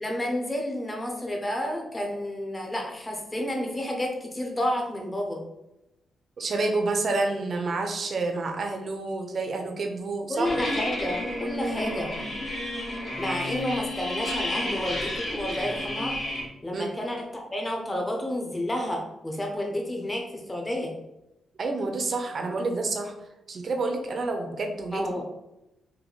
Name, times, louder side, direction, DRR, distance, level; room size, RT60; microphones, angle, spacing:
voice 1, 0.0-5.4 10.3-12.1 13.2-16.2 16.6-20.9 24.9-25.2, left 1 dB, 15° left, 1 dB, 0.8 m, -30 dB
voice 2, 6.4-10.5 16.7-16.9 21.6-23.1 23.5-25.3, right 3 dB, 50° right, 4 dB, 0.7 m, -29 dB
sound 1, 10.4-16.4, left 1 dB, 50° left, 1.3 m, -31 dB
3.5 x 2.7 x 3.9 m, 0.92 s
cardioid pair, 115°, 0 cm